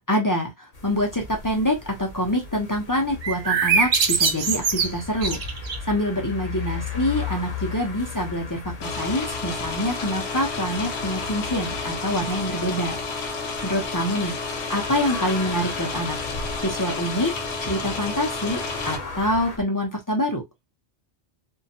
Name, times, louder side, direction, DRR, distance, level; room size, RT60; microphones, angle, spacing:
voice 1, 0.1-5.4 5.8-13.0 13.6-14.3 14.7-16.2 16.6-17.3 17.6-18.6 18.8-20.4, equal, 25° left, 0.5 m, -25 dB
sound 1, 0.7-19.6, left 5 dB, 40° left, 0.9 m, -37 dB
sound 2, 3.2-5.9, right 5 dB, 55° right, 0.5 m, -23 dB
sound 3, 8.8-19.0, left 4 dB, 90° left, 0.9 m, -31 dB
2.7 x 2.2 x 2.7 m
omnidirectional pair, 1.1 m